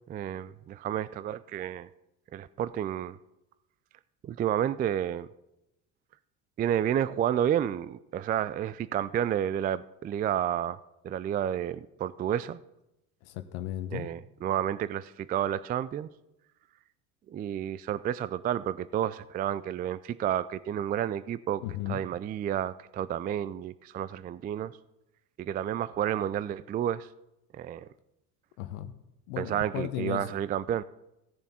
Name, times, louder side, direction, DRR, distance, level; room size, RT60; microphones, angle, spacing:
voice 1, 0.1-1.9 2.3-3.2 4.2-5.3 6.6-12.6 13.9-16.1 17.3-21.6 21.9-24.7 25.4-27.1 27.5-27.9 29.4-30.8, right 10 dB, 25° right, 0.3 m, -30 dB
voice 2, 13.2-14.1 21.6-22.0 28.6-28.9 29.3-30.2, left 12 dB, 75° left, 1.0 m, -35 dB
16.5 x 7.0 x 4.2 m
hypercardioid pair, 70°, 44 cm